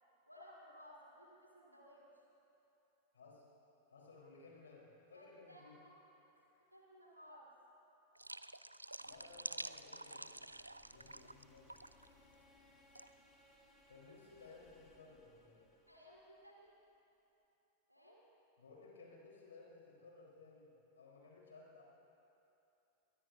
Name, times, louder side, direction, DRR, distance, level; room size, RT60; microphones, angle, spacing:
voice 1, 0.3-2.0 5.1-5.9 6.4-6.5 6.7-7.5 15.9-16.7 17.9-18.2, equal, 90° left, -3 dB, 2.2 m, -59 dB
voice 2, 3.1-3.4 3.9-5.8 9.0-10.4 10.8-11.7 13.9-15.7 18.6-21.8, left 3 dB, 70° left, -3 dB, 3.9 m, -59 dB
sound 1, 8.1-11.4 11.7-12.1 12.9-13.1, right 2 dB, 85° right, 0.3 m, -48 dB
sound 2, 9.0-16.9, left 1 dB, 15° left, 3.3 m, -68 dB
22.5 x 19.5 x 2.7 m, 3.0 s
figure-of-eight pair, 90°, 0 cm